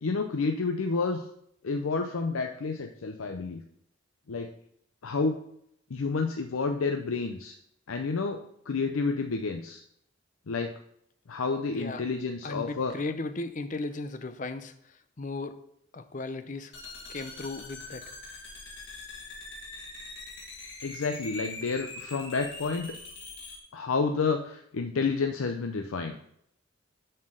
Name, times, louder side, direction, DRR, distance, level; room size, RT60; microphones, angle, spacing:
voice 1, 0.0-1.3 1.6-3.6 4.3-4.5 5.0-5.4 5.9-7.5 7.9-9.8 10.5-10.7 11.3-12.9 20.8-22.9 23.7-26.2, left 4 dB, 90° left, 5 dB, 0.6 m, -30 dB
voice 2, 12.4-15.6 15.9-16.7 17.1-18.0, left 3 dB, 40° left, 10 dB, 0.6 m, -36 dB
sound 1, 16.7-23.6, left 2 dB, 60° left, 1.8 m, -43 dB
7.1 x 4.4 x 6.4 m, 0.72 s
head